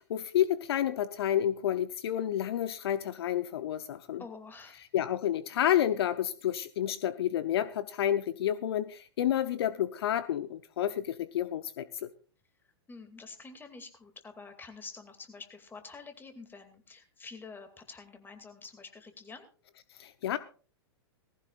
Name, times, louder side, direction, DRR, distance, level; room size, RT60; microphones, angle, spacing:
voice 1, 0.0-4.2 4.9-12.1 20.0-20.4, left 11 dB, 65° left, 0.7 m, -30 dB
voice 2, 4.2-4.8 12.9-19.5, left 4 dB, 15° left, 2.4 m, -48 dB
18.5 x 15.5 x 2.4 m
hypercardioid pair, 105°, 14 cm